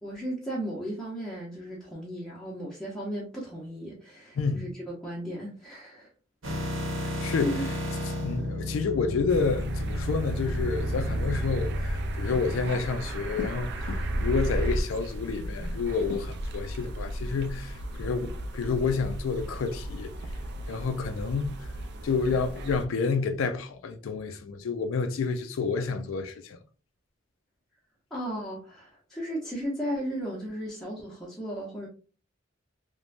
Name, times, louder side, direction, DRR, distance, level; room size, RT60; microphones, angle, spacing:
voice 1, 0.0-6.1 7.4-7.6 28.1-31.9, equal, ahead, 0.7 m, -35 dB
voice 2, 4.4-4.7 7.0-7.5 8.2-20.1 20.7-21.7 22.0-26.6, left 4 dB, 85° left, 0.4 m, -29 dB
sound 1, 6.4-14.8, equal, 90° right, 0.9 m, -32 dB
sound 2, 9.3-22.9, right 1 dB, 55° right, 0.4 m, -36 dB
3.0 x 2.2 x 2.4 m
head